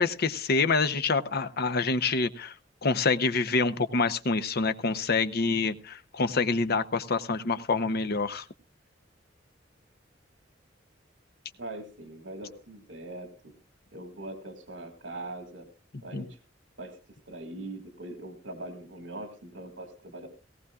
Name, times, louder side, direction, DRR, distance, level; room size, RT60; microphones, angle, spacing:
voice 1, 0.0-2.5 2.8-8.4 16.1-16.3, left 4 dB, 55° left, 10 dB, 0.8 m, -26 dB
voice 2, 11.5-13.5 13.9-15.7 16.0-16.4 16.8-20.3, right 2 dB, 75° right, 6 dB, 2.0 m, -41 dB
18.0 x 18.0 x 2.4 m, 0.32 s
head